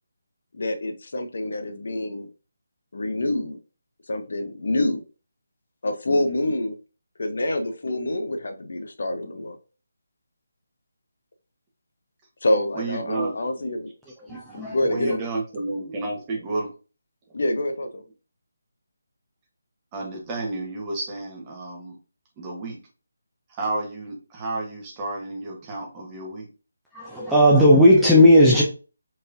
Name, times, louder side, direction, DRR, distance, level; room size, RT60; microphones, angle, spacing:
voice 1, 0.5-2.3 2.9-3.6 4.1-5.0 5.8-6.8 7.2-9.6 12.4-13.9 14.3-15.3 17.3-18.0, left 1 dB, 60° left, 0.7 m, -26 dB
voice 2, 12.7-13.3 14.9-16.7 19.9-22.0 22.4-22.8 23.5-26.5, right 2 dB, 20° right, 1.1 m, -31 dB
voice 3, 14.3-14.7 26.9-28.6, equal, ahead, 0.6 m, -15 dB
4.6 x 3.1 x 2.5 m
figure-of-eight pair, 155°, 0 cm